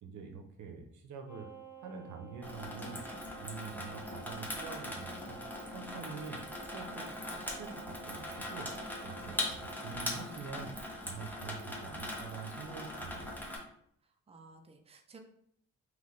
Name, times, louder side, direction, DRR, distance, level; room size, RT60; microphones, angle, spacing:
voice 1, 0.0-1.5 1.8-3.0 3.4-5.4 5.7-8.7 9.0-9.4 9.8-10.7 11.0-13.4, right 5 dB, 75° right, 4 dB, 0.8 m, -46 dB
sound 1, 1.3-9.8, right 8 dB, 85° left, 1.4 m, -53 dB
Water tap faucet / Sink (filling or washing), 2.4-13.6, left 1 dB, 5° left, 0.9 m, -41 dB
voice 2, 14.3-15.2, right 4 dB, 20° right, 3 dB, 0.6 m, -55 dB
3.3 x 3.1 x 4.0 m, 0.69 s
cardioid pair, 90°, 30 cm